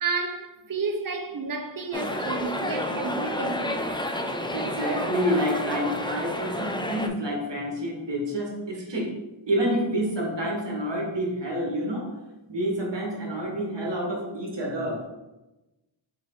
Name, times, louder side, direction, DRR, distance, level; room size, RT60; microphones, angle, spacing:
voice 1, 0.0-3.9, right 4 dB, 45° right, 0.7 m, -31 dB
sound 1, 1.9-7.1, left 1 dB, 10° left, 0.5 m, -30 dB
voice 2, 4.5-9.1 9.5-12.1 12.5-15.0, equal, 60° right, 1.3 m, -28 dB
3.8 x 3.7 x 3.6 m
cardioid pair, 45°, 48 cm